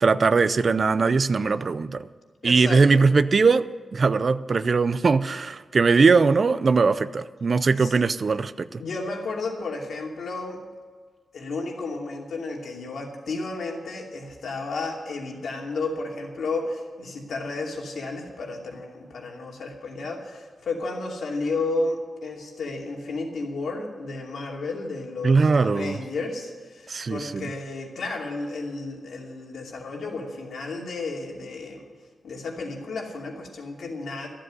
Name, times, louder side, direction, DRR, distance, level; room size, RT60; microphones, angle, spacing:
voice 1, 0.0-2.1 2.4-3.6 3.9-8.8 25.2-26.0 26.9-27.5, right 4 dB, 45° right, 15 dB, 0.5 m, -20 dB
voice 2, 2.4-3.0 7.8-7.9 8.8-10.6 11.3-31.9 32.2-34.3, left 3 dB, 75° left, 0 dB, 2.7 m, -32 dB
14.0 x 7.7 x 9.5 m, 1.6 s
wide cardioid pair, 140°, 0 cm